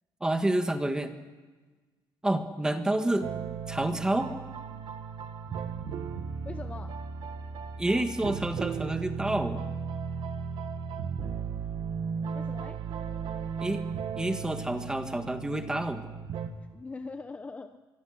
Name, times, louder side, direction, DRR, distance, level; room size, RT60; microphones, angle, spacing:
voice 1, 0.2-1.1 2.2-3.3 3.7-4.3 7.8-9.6 13.6-13.8 14.1-16.1, right 1 dB, 10° right, 7 dB, 1.6 m, -28 dB
sound 1, 3.2-16.5, right 6 dB, 60° right, 1.9 m, -36 dB
voice 2, 6.4-7.0 12.3-12.8 16.7-17.8, left 3 dB, 15° left, 9 dB, 0.8 m, -42 dB
24.5 x 24.0 x 6.5 m, 1.3 s
cardioid pair, 165°, 8 cm